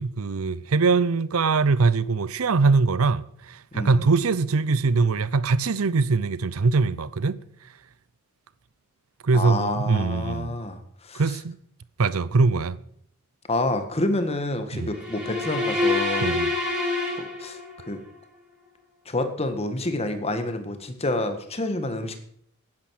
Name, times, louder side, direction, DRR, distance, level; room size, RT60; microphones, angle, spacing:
voice 1, 0.0-7.4 9.2-10.6 11.1-11.6 12.0-12.8 14.7-14.9 16.2-16.5, right 4 dB, 80° right, 0.6 m, -22 dB
voice 2, 3.7-4.1 9.3-11.2 13.5-16.4 17.2-17.6 17.9-18.0 19.1-22.2, left 2 dB, 30° left, 1.7 m, -28 dB
sound 1, 14.9-18.0, left 2 dB, 5° right, 4.7 m, -26 dB
10.5 x 10.5 x 7.6 m
head